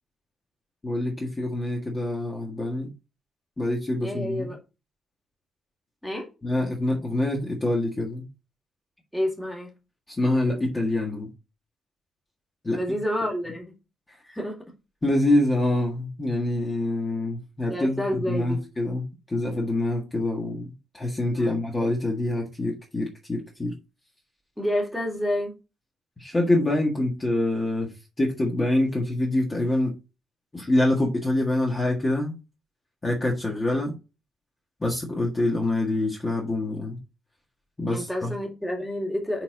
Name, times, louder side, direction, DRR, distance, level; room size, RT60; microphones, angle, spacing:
voice 1, 0.8-2.9 3.6-4.5 6.4-8.2 10.2-11.3 12.6-12.8 15.0-18.0 18.3-23.7 26.2-29.9 30.5-32.3 33.0-33.9 34.8-37.0 37.8-38.3, left 1 dB, 15° left, 1.7 m, -25 dB
voice 2, 4.0-4.6 6.0-6.3 9.1-9.7 12.7-13.7 14.3-14.5 17.7-18.6 21.3-21.6 24.6-25.5 33.7-33.8 37.9-39.4, left 1 dB, ahead, 2.2 m, -29 dB
9.6 x 4.2 x 3.9 m
cardioid pair, 155°, 0 cm